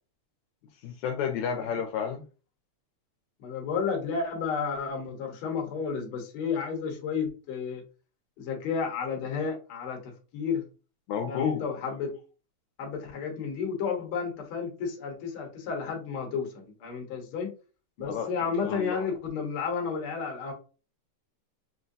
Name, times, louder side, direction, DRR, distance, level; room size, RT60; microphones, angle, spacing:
voice 1, 0.8-2.2 11.1-11.7 18.1-18.3 18.6-19.1, left 7 dB, 80° left, 4 dB, 1.9 m, -31 dB
voice 2, 3.4-7.8 8.4-10.0 10.3-10.6 11.3-12.1 12.8-17.5 18.0-20.5, left 5 dB, 55° left, 1 dB, 1.7 m, -32 dB
6.0 x 2.1 x 2.6 m, 0.34 s
omnidirectional pair, 3.4 m